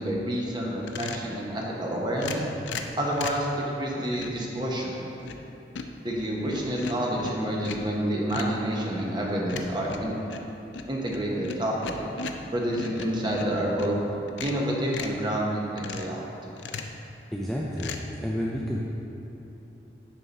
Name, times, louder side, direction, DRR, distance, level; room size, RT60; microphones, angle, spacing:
voice 1, 0.0-2.4 3.0-3.5 3.7-4.9 6.0-10.1 10.9-12.0 12.5-13.9 14.4-16.3, right 1 dB, 25° right, -3 dB, 0.9 m, -28 dB
sound 1, 0.8-1.3 2.2-3.5 4.1-4.5 5.0-5.5 5.7-7.9 8.3-8.6 9.5-13.9 14.3-15.2 15.8-16.2 16.6-17.0 17.8-18.0, left 4 dB, 85° left, 0.5 m, -37 dB
voice 2, 17.3-18.8, equal, ahead, -4 dB, 0.3 m, -30 dB
10.5 x 3.7 x 4.1 m, 2.9 s
head